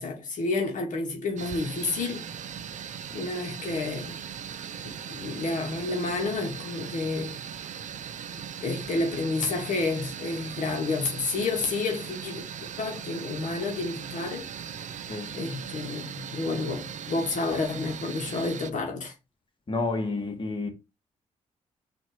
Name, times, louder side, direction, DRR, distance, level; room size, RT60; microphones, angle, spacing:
voice 1, 0.0-2.3 3.1-4.2 4.8-7.4 8.6-14.5 15.3-19.1, left 3 dB, 65° left, 1.2 m, -30 dB
sound 1, 1.4-18.7, right 8 dB, 60° right, 0.5 m, -39 dB
voice 2, 19.7-20.7, left 3 dB, 35° left, 1.5 m, -30 dB
4.1 x 2.5 x 4.8 m
supercardioid pair, 60°, 14 cm